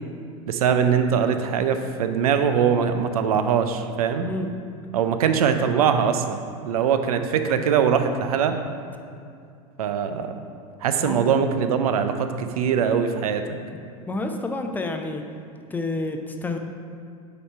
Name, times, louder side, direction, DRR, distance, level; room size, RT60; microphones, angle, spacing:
voice 1, 0.5-4.3 4.9-6.4 6.6-8.5 9.8-10.3 10.8-13.4, right 7 dB, 80° right, 8 dB, 0.5 m, -22 dB
voice 2, 11.0-11.3 14.1-15.2 15.7-16.6, left 2 dB, 10° left, 4 dB, 0.5 m, -29 dB
8.1 x 3.0 x 5.5 m, 2.3 s
hypercardioid pair, 100°, 19 cm